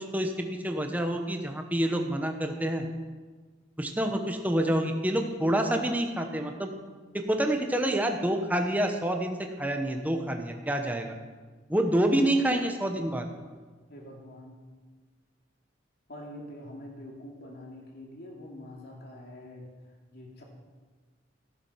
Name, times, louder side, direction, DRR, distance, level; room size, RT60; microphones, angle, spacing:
voice 1, 0.0-2.9 3.8-6.7 7.1-11.2 11.7-13.3, right 1 dB, 10° right, 4 dB, 1.1 m, -27 dB
voice 2, 13.9-14.6 16.1-19.7 20.1-20.4, left 1 dB, 55° left, -1 dB, 2.9 m, -45 dB
15.5 x 9.0 x 5.8 m, 1.4 s
head